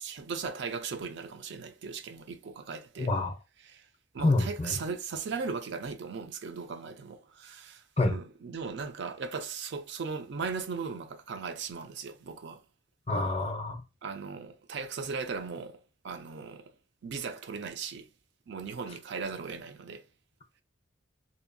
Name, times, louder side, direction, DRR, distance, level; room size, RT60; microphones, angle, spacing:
voice 1, 0.0-3.1 3.7-3.9 4.1-12.6 14.0-16.7 17.0-18.1 18.5-20.0, right 5 dB, 55° right, 0.4 m, -38 dB
voice 2, 3.0-3.3 4.2-4.8 8.0-8.2 13.1-13.8, left 2 dB, 30° left, 0.5 m, -27 dB
2.7 x 2.3 x 2.5 m
head